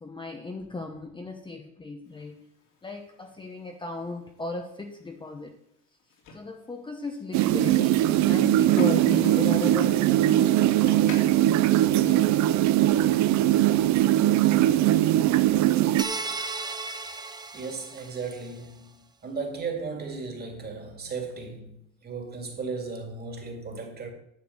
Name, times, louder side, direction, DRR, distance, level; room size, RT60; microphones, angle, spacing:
voice 1, 0.0-2.5 2.8-5.6 6.3-11.2 11.8-12.3, left 2 dB, 15° left, 0.8 m, -36 dB
sound 1, 2.0-12.5, left 3 dB, 70° left, 2.9 m, -47 dB
sound 2, 7.3-16.0, right 13 dB, 65° right, 0.6 m, -21 dB
sound 3, 16.0-18.5, right 3 dB, 15° right, 0.5 m, -35 dB
voice 2, 17.5-24.1, right 4 dB, 30° right, 2.2 m, -36 dB
10.5 x 4.6 x 7.7 m
cardioid pair, 135°, 31 cm